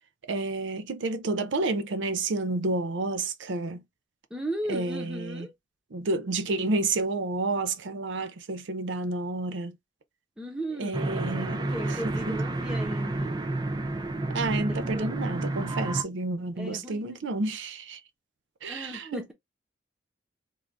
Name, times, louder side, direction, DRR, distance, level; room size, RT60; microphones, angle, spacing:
voice 1, 0.3-3.8 4.7-5.5 5.9-9.8 10.8-12.4 14.3-18.0 18.6-19.2, right 3 dB, 75° right, 0.6 m, -30 dB
voice 2, 4.3-5.5 10.4-11.0 11.7-13.4 14.7-15.0 16.6-17.2 18.7-19.3, right 1 dB, 5° right, 0.9 m, -36 dB
sound 1, 10.9-16.0, right 2 dB, 20° right, 0.4 m, -30 dB
3.7 x 2.5 x 3.3 m
head